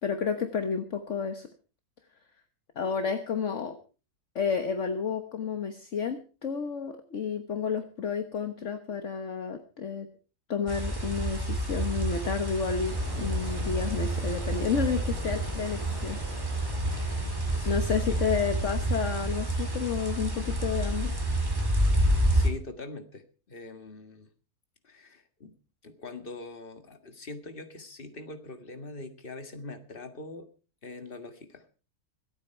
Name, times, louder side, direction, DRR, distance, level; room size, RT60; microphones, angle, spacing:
voice 1, 0.0-1.5 2.7-3.8 4.3-10.1 10.5-16.2 17.1-17.2 17.6-21.1, left 6 dB, 55° left, 7 dB, 1.5 m, -31 dB
sound 1, 10.7-22.5, right 1 dB, 15° right, 2.6 m, -29 dB
sound 2, 12.9-17.9, equal, 50° right, 7.8 m, -45 dB
voice 2, 16.9-18.4 21.9-24.3 24.8-25.5 25.8-30.5 30.8-31.8, left 3 dB, 35° left, 8 dB, 2.0 m, -43 dB
25.5 x 9.0 x 4.4 m, 0.36 s
omnidirectional pair, 1.6 m